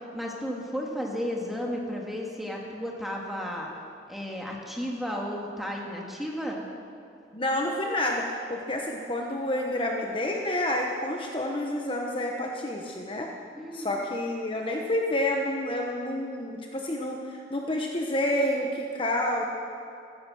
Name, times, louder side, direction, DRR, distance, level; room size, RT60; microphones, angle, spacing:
voice 1, 0.1-3.7 4.1-6.6 13.5-14.0, equal, ahead, -1 dB, 1.9 m, -33 dB
voice 2, 7.3-13.3 13.7-19.4, left 1 dB, 30° left, 1 dB, 1.0 m, -29 dB
15.5 x 14.0 x 6.3 m, 2.6 s
head